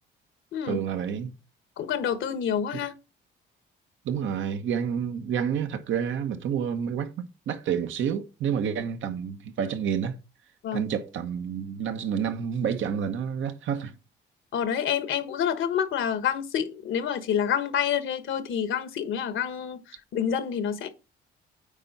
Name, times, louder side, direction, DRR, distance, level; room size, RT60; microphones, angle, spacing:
voice 1, 0.6-1.3 4.0-10.2 10.7-13.9, right 8 dB, 75° right, 1.1 m, -29 dB
voice 2, 1.8-2.9 10.6-10.9 14.5-20.9, left 8 dB, 80° left, 1.2 m, -28 dB
8.7 x 4.4 x 4.1 m
cardioid pair, 90°, 20 cm